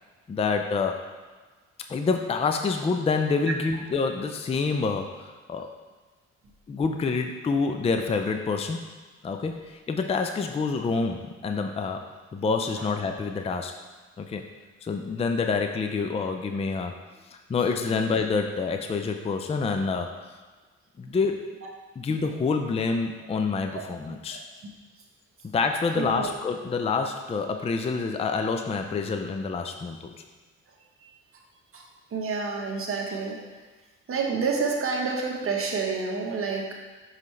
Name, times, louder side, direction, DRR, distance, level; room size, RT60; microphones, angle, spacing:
voice 1, 0.3-1.1 1.9-5.7 6.7-8.8 9.2-13.7 14.2-14.4 14.8-16.9 17.3-20.2 21.0-24.4 25.4-30.1, left 4 dB, 20° left, 5 dB, 0.4 m, -27 dB
voice 2, 25.9-26.3 31.7-31.9 32.1-33.4 34.1-36.7, right 4 dB, 45° right, 0 dB, 1.1 m, -28 dB
5.6 x 5.3 x 3.2 m, 1.3 s
cardioid pair, 90°, 30 cm